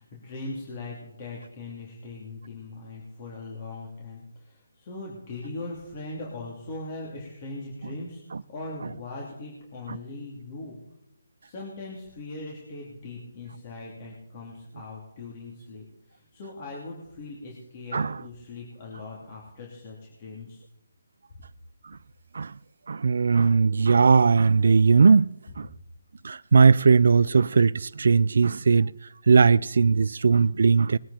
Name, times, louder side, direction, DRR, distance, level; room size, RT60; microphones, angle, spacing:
voice 1, 0.0-10.8 11.4-20.6, left 2 dB, 30° left, 3.2 m, -40 dB
voice 2, 17.9-18.2 21.8-22.0 22.3-22.5 22.9-25.7 26.2-28.9 29.3-31.0, right 5 dB, 65° right, 0.4 m, -19 dB
21.0 x 9.3 x 4.3 m
hypercardioid pair, 160°, 0 cm